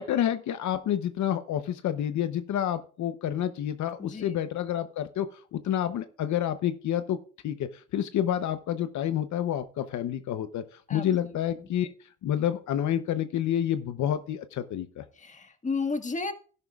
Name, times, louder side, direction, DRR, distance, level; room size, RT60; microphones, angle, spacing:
voice 1, 0.0-5.3 5.5-7.2 7.4-11.9 12.2-15.0, left 10 dB, 70° left, 10 dB, 0.8 m, -29 dB
voice 2, 4.0-4.3 10.9-11.0 15.2-16.3, left 4 dB, 25° left, 7 dB, 1.6 m, -32 dB
13.0 x 11.0 x 2.4 m, 0.40 s
cardioid pair, 90°, 30 cm